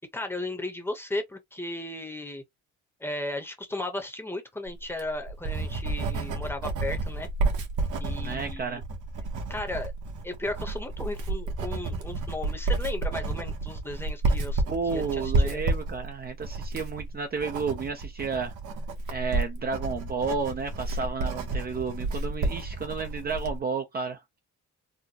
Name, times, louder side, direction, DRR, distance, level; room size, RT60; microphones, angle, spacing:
voice 1, 0.1-2.4 3.0-7.3 8.0-8.8 9.5-9.9 10.2-14.6 14.9-15.6, left 2 dB, 10° left, 0.9 m, -35 dB
Writing, 4.8-23.6, right 2 dB, 80° right, 1.2 m, -30 dB
voice 2, 8.1-8.8 14.7-18.5 19.1-24.4, right 5 dB, 30° right, 0.6 m, -32 dB
4.2 x 2.2 x 2.8 m
cardioid pair, 140°, 29 cm